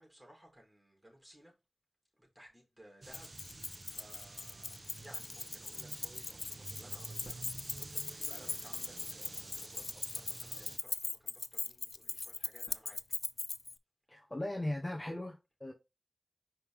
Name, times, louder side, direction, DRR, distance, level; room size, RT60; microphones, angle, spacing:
voice 1, 0.0-1.5 2.2-3.3 3.8-7.4 7.8-13.0, equal, 15° right, 4.0 m, -58 dB
sound 1, 3.0-10.8, right 2 dB, 55° right, 1.0 m, -50 dB
Keys jangling, 3.1-13.8, left 4 dB, 75° left, 0.4 m, -40 dB
voice 2, 14.1-15.7, left 1 dB, 25° left, 1.2 m, -38 dB
5.4 x 5.3 x 3.6 m
wide cardioid pair, 50°, 0 cm